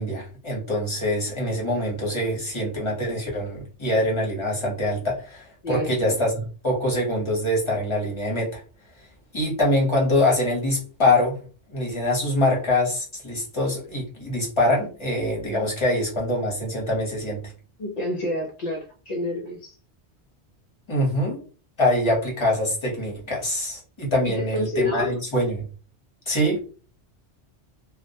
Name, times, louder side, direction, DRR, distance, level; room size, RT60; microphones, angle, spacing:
voice 1, 0.0-8.6 9.3-11.4 11.7-17.4 20.9-21.4 21.8-25.6 26.3-26.6, left 1 dB, 30° left, -2 dB, 0.8 m, -24 dB
voice 2, 5.6-6.1 15.4-15.7 17.8-19.7 24.2-25.1, left 1 dB, 55° left, -1 dB, 0.4 m, -29 dB
2.2 x 2.1 x 2.7 m, 0.37 s
omnidirectional pair, 1.2 m